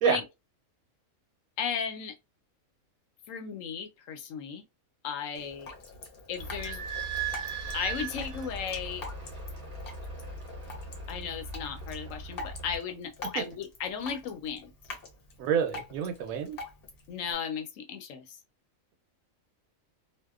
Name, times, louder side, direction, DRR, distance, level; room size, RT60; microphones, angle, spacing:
voice 1, 1.6-2.1 3.3-4.6 5.0-5.7 6.3-6.8 7.7-9.0 11.1-14.7 17.1-18.4, left 7 dB, 75° left, 0.9 m, -35 dB
Drip, 5.3-17.3, left 3 dB, 50° left, 0.8 m, -45 dB
Idling / Squeak, 6.4-12.8, right 5 dB, 45° right, 0.8 m, -38 dB
voice 2, 15.4-16.6, right 7 dB, 80° right, 1.1 m, -27 dB
2.7 x 2.1 x 2.3 m
omnidirectional pair, 1.4 m